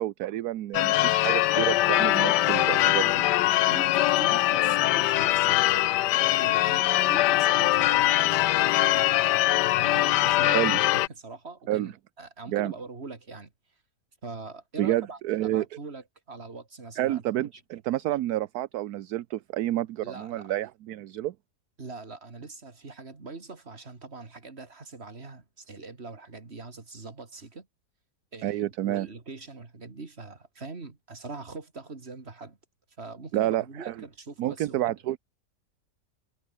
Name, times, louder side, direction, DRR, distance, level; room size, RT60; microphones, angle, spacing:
voice 1, 0.0-3.0 10.4-10.8 11.7-11.9 12.5-12.7 14.8-15.6 17.0-21.3 28.4-29.1 33.3-33.9 34.4-35.2, right 14 dB, 70° right, 1.1 m, -29 dB
Church bell / Car / Alarm, 0.7-11.1, left 16 dB, 80° left, 1.2 m, -22 dB
voice 2, 2.4-3.2 3.7-5.7 6.4-9.1 9.8-11.9 12.2-13.5 14.2-17.2 17.5-17.6 20.0-20.5 21.8-27.7 28.3-32.6 33.0-34.9, right 3 dB, 35° right, 2.9 m, -42 dB
omnidirectional pair, 1.8 m